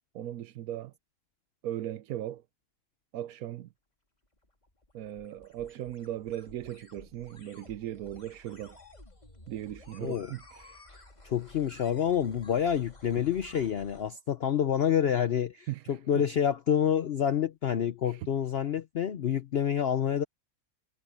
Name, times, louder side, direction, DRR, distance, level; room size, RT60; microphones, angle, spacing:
voice 1, 0.1-0.9 1.6-2.4 3.1-3.7 4.9-8.8 9.5-10.8 15.7-16.2 18.0-18.3, right 12 dB, 85° right, 1.1 m, -38 dB
sound 1, 4.2-14.1, left 2 dB, 30° left, 3.2 m, -54 dB
voice 2, 11.2-20.2, left 9 dB, 55° left, 0.8 m, -28 dB
omnidirectional pair, 1.5 m